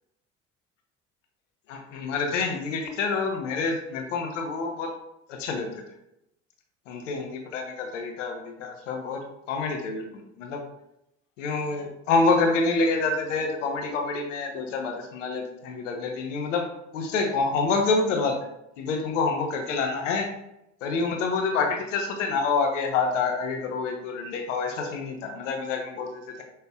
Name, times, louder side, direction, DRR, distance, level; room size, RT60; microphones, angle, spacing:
voice 1, 1.7-4.9 5.3-5.7 6.9-10.6 11.4-16.7 16.9-18.4 18.8-20.3 20.8-26.4, left 4 dB, 90° left, 3 dB, 0.8 m, -27 dB
5.5 x 3.2 x 2.3 m, 0.83 s
hypercardioid pair, 65°, 36 cm